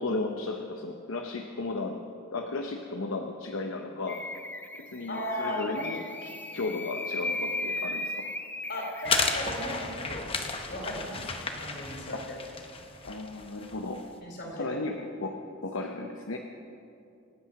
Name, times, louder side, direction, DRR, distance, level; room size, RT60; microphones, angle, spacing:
voice 1, 0.0-2.0 2.3-4.3 4.8-8.3 12.1-12.3 13.0-14.1 14.5-16.4, left 3 dB, 70° left, 4 dB, 0.9 m, -35 dB
sound 1, 4.1-9.6, left 2 dB, 10° left, 0.5 m, -36 dB
voice 2, 5.1-5.6 8.7-10.3 10.7-11.3 11.5-12.4 14.2-14.8, equal, 50° left, -1 dB, 4.0 m, -36 dB
sound 2, 9.0-14.0, left 4 dB, 25° left, 0.9 m, -33 dB
26.5 x 8.9 x 5.9 m, 2.6 s
head